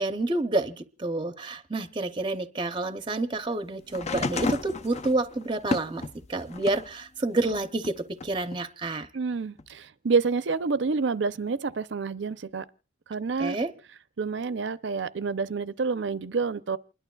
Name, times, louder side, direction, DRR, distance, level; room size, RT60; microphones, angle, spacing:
voice 1, 0.0-6.0 6.3-9.1 13.4-13.7, right 2 dB, 25° right, 0.6 m, -29 dB
sound 1, 3.9-6.9 7.4-8.6 9.6-9.7, left 3 dB, 35° left, 0.6 m, -32 dB
voice 2, 9.1-12.6 13.1-13.6 14.2-16.8, right 4 dB, 70° right, 0.6 m, -28 dB
28.5 x 11.5 x 2.3 m
head